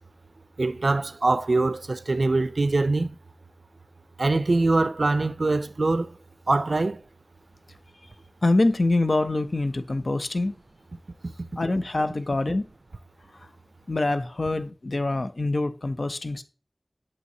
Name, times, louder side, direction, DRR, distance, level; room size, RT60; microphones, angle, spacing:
voice 1, 0.6-3.1 4.2-6.1 6.5-7.0 11.2-11.3, right 2 dB, 85° right, 0.3 m, -23 dB
voice 2, 8.4-10.6 11.6-12.7 13.9-16.4, left 2 dB, 70° left, 0.6 m, -25 dB
8.2 x 6.7 x 2.7 m
wide cardioid pair, 40°, 0 cm